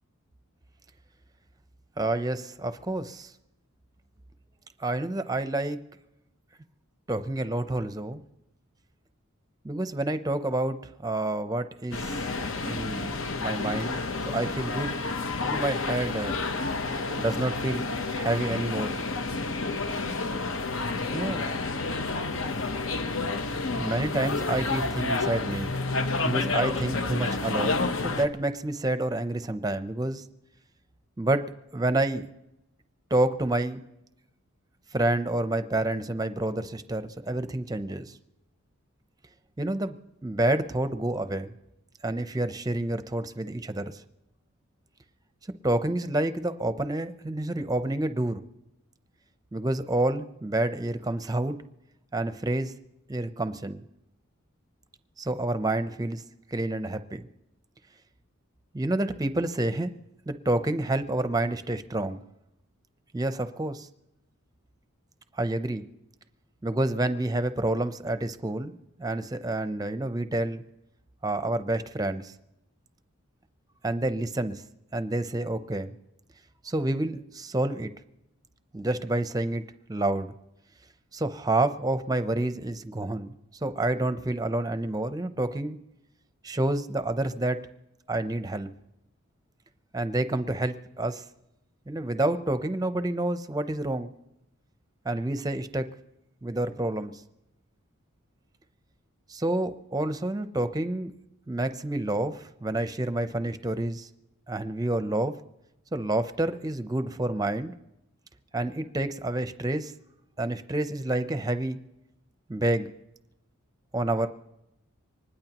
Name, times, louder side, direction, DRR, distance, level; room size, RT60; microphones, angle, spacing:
voice 1, 2.0-3.3 4.8-5.8 7.1-8.2 9.6-12.2 12.6-14.0 14.3-15.0 15.4-16.4 17.2-19.0 21.1-21.4 23.8-25.7 26.2-30.2 31.2-32.3 33.1-33.8 34.9-38.1 39.6-40.0 40.2-41.5 42.0-44.0 45.6-48.4 49.5-51.6 52.1-52.7 53.1-53.8 55.2-56.2 56.5-57.3 58.7-59.9 60.3-62.2 63.1-63.9 65.3-65.9 66.6-70.6 71.2-72.3 73.8-74.6 74.9-75.9 76.6-77.9 78.7-79.6 79.9-80.3 81.1-83.3 83.6-85.8 86.4-87.6 88.1-88.7 89.9-91.2 91.9-94.1 95.0-95.9 96.4-97.1 99.3-101.1 101.5-104.1 104.5-105.4 105.9-107.8 108.5-109.9 110.4-111.8 112.5-112.9 113.9-114.3, right 2 dB, 20° right, 10 dB, 0.6 m, -28 dB
sound 1, 11.9-28.3, left 3 dB, 65° left, 1.0 m, -30 dB
24.5 x 20.0 x 3.0 m, 0.89 s
head